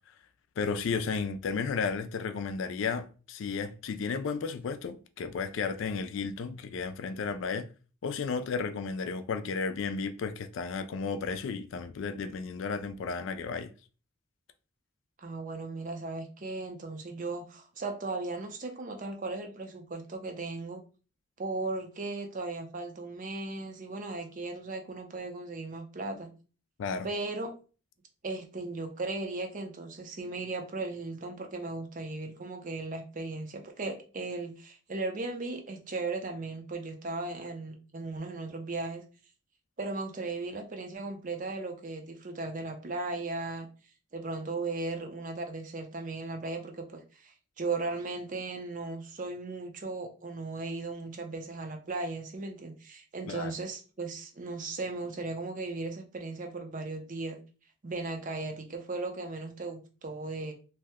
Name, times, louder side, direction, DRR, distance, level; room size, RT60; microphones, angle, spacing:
voice 1, 0.6-7.7 8.0-13.7 26.8-27.1 53.3-53.5, left 5 dB, 60° left, 0.3 m, -33 dB
voice 2, 15.2-20.8 21.4-26.3 27.0-27.5 28.2-39.0 39.8-43.7 44.1-57.4 57.8-60.5, right 3 dB, 40° right, 0.5 m, -37 dB
2.7 x 2.1 x 3.4 m
head